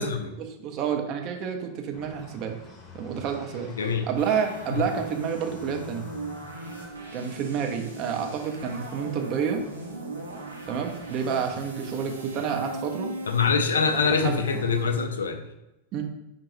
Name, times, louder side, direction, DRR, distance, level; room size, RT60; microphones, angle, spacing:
voice 1, 0.4-2.5 2.9-3.7 4.1-6.1 7.1-9.6 10.7-13.1 13.9-14.4 15.9-16.0, right 7 dB, 40° right, 3 dB, 0.5 m, -29 dB
sound 1, 1.9-6.9, left 2 dB, 30° left, 0.7 m, -47 dB
voice 2, 3.8-4.1 4.7-4.9 13.3-15.5, left 5 dB, 65° left, 7 dB, 0.3 m, -24 dB
sound 2, 4.2-15.0, right 1 dB, 85° right, 0.7 m, -39 dB
5.2 x 2.2 x 3.0 m, 0.95 s
figure-of-eight pair, 90°, 0 cm